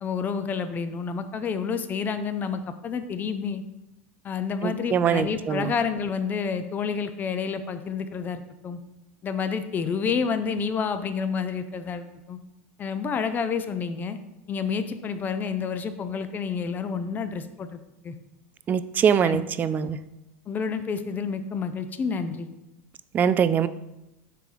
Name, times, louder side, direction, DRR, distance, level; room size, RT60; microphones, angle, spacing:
voice 1, 0.0-3.6 4.2-8.8 9.2-12.4 12.8-14.2 14.5-18.2 19.2-19.4 19.8-19.9 20.5-22.5, left 6 dB, 25° left, 10 dB, 0.5 m, -29 dB
voice 2, 4.6-5.7 18.7-20.0 23.1-23.7, right 8 dB, 25° right, 15 dB, 0.3 m, -23 dB
6.6 x 4.8 x 3.9 m, 0.94 s
supercardioid pair, 130°, 7 cm